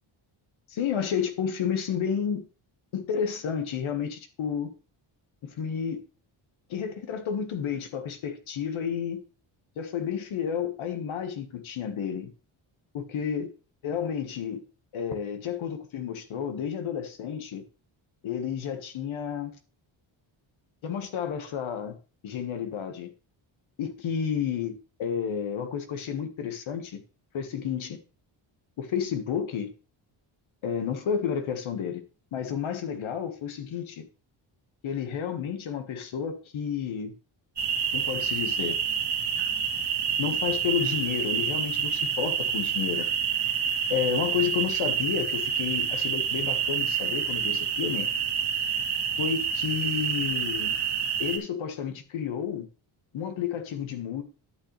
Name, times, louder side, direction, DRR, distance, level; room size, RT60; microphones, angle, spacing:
voice 1, 0.7-2.4 2.9-4.7 5.4-6.0 6.7-9.2 9.8-12.3 12.9-13.5 13.8-14.6 14.9-17.6 18.2-19.5 20.8-22.0 22.2-23.1 23.8-27.0 27.3-28.0 28.8-29.7 30.6-32.0 32.3-34.1 34.8-37.1 37.9-38.8 40.2-43.1 43.9-48.1 49.2-50.7 51.2-52.7 53.1-54.2, left 8 dB, 75° left, 1.5 m, -31 dB
sound 1, 37.6-51.4, right 7 dB, 55° right, 2.2 m, -28 dB
11.0 x 6.4 x 3.2 m
cardioid pair, 105°, 48 cm